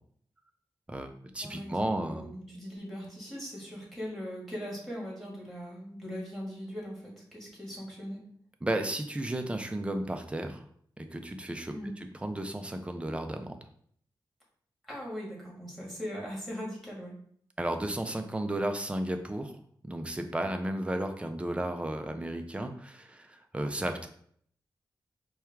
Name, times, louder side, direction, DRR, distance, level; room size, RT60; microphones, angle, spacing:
voice 1, 0.9-2.3 8.6-10.6 11.0-11.7 12.2-13.6 17.6-19.5 19.8-24.1, right 1 dB, 15° right, 5 dB, 0.5 m, -33 dB
voice 2, 1.4-8.2 11.7-11.9 14.9-17.1, equal, ahead, -3 dB, 1.6 m, -40 dB
4.5 x 2.3 x 3.4 m, 0.62 s
wide cardioid pair, 90°, 8 cm